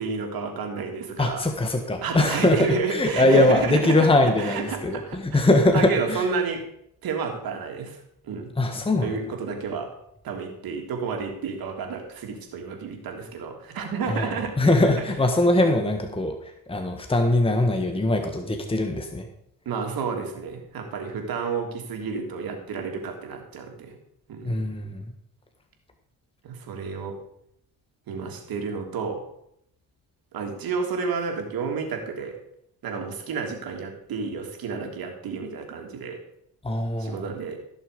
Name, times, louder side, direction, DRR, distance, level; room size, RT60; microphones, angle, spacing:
voice 1, 0.0-1.4 2.0-4.1 4.4-5.5 5.7-6.6 7.0-8.5 9.0-9.9 10.2-14.5 19.6-23.9 24.3-24.7 26.4-27.2 28.1-29.2 30.3-32.3 32.8-36.2 37.0-37.6, right 5 dB, 65° right, 2 dB, 3.0 m, -31 dB
voice 2, 1.2-2.6 2.9-6.3 8.6-9.2 14.1-19.3 24.4-25.1 36.6-37.3, left 2 dB, 15° left, 5 dB, 1.4 m, -22 dB
15.5 x 6.5 x 5.2 m, 0.74 s
supercardioid pair, 80°, 38 cm